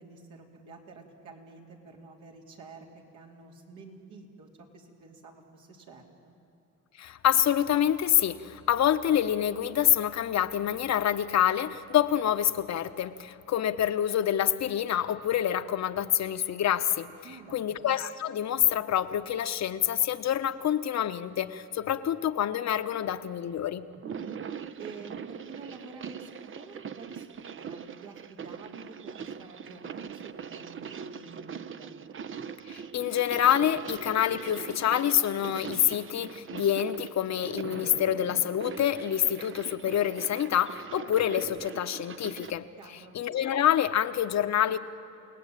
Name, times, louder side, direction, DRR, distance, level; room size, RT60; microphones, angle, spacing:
voice 1, 0.0-6.3 17.2-17.8 24.0-24.4 24.8-31.9 42.8-43.2, right 4 dB, 75° right, 0 dB, 4.1 m, -49 dB
voice 2, 7.0-17.1 17.5-23.9 32.7-42.7 43.1-44.8, left 10 dB, 60° left, 11 dB, 1.1 m, -27 dB
sound 1, 23.9-42.6, right 7 dB, 45° right, 0.8 m, -41 dB
29.0 x 18.5 x 9.2 m, 3.0 s
cardioid pair, 90°, 30 cm